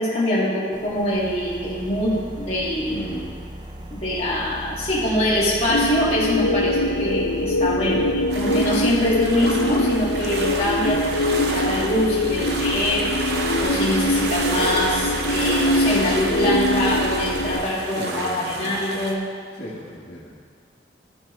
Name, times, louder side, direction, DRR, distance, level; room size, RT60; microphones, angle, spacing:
voice 1, 0.0-3.0 3.9-8.1 8.4-13.1 13.6-19.3, left 1 dB, 30° left, -8 dB, 1.9 m, -24 dB
sound 1, 0.7-17.6, right 1 dB, 25° right, 0.4 m, -36 dB
voice 2, 2.9-3.3 7.9-8.2 10.8-11.0 12.3-12.5 17.9-18.8 19.6-20.3, left 1 dB, 60° left, -8 dB, 1.2 m, -35 dB
sound 2, 5.7-17.6, left 2 dB, 85° left, 0.5 m, -23 dB
sound 3, 8.3-19.2, right 2 dB, 60° right, 0.7 m, -30 dB
13.0 x 4.4 x 3.2 m, 2.1 s
head